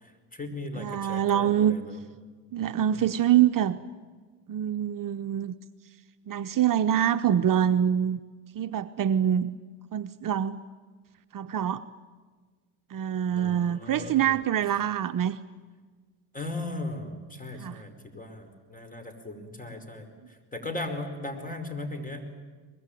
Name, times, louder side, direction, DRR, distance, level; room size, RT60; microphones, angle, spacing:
voice 1, 0.0-2.0 2.9-3.0 13.3-14.4 16.3-20.1 20.5-22.3, left 2 dB, 15° left, 8 dB, 4.9 m, -37 dB
voice 2, 0.7-1.8 2.5-3.8 4.5-5.5 6.3-8.2 8.5-9.6 9.9-10.6 11.3-11.8 12.9-15.4 17.6-17.8, right 10 dB, 45° right, 9 dB, 0.8 m, -25 dB
23.0 x 21.0 x 9.2 m, 1.4 s
hypercardioid pair, 70°, 47 cm